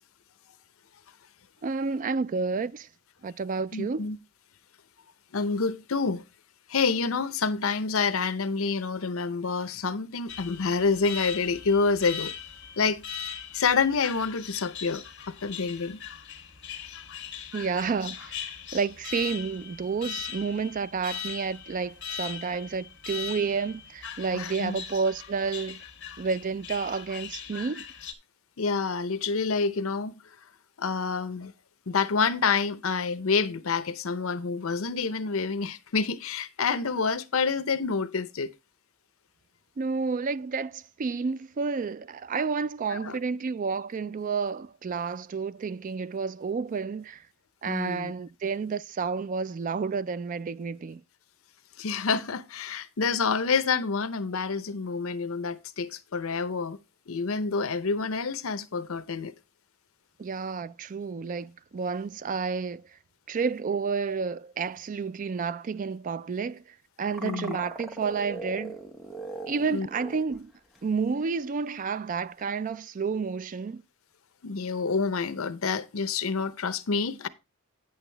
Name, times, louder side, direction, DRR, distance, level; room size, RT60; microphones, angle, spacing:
voice 1, 1.6-2.9 3.2-4.1 17.5-25.8 26.2-27.9 39.8-47.2 47.6-51.0 60.2-62.8 63.3-66.6 67.0-68.8 69.5-70.5 70.8-73.8, right 5 dB, 40° right, 0.3 m, -30 dB
voice 2, 3.7-4.2 5.3-6.2 6.7-12.3 12.8-13.0 13.5-16.0 24.3-24.8 28.6-30.1 30.8-31.5 31.9-38.5 42.9-43.2 47.6-48.1 51.8-56.8 57.1-59.3 67.2-67.6 69.7-69.9 74.4-77.3, left 5 dB, 75° left, 0.7 m, -28 dB
Alarm, 10.3-28.1, left 8 dB, 60° left, 1.5 m, -40 dB
sound 1, 67.1-70.4 70.7-70.8 72.4-72.5, right 2 dB, ahead, 1.3 m, -39 dB
9.1 x 8.0 x 3.3 m
head